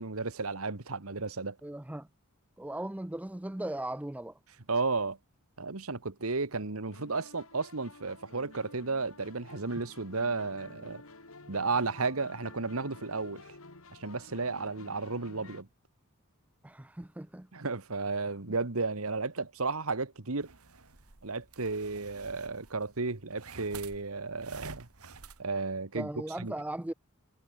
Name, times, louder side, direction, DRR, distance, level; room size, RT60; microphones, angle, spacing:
voice 1, 0.0-1.6 4.7-5.2 5.6-11.0 11.5-13.4 14.0-15.7 17.5-20.5 21.2-24.9 25.4-26.1 26.4-26.5, right 3 dB, 70° right, 1.6 m, -33 dB
voice 2, 1.6-2.1 2.6-4.4 16.6-17.5 25.9-26.9, right 1 dB, 5° right, 0.4 m, -38 dB
sound 1, 6.9-15.6, left 2 dB, 70° left, 3.4 m, -52 dB
sound 2, 20.4-25.4, right 4 dB, 85° right, 2.3 m, -49 dB
head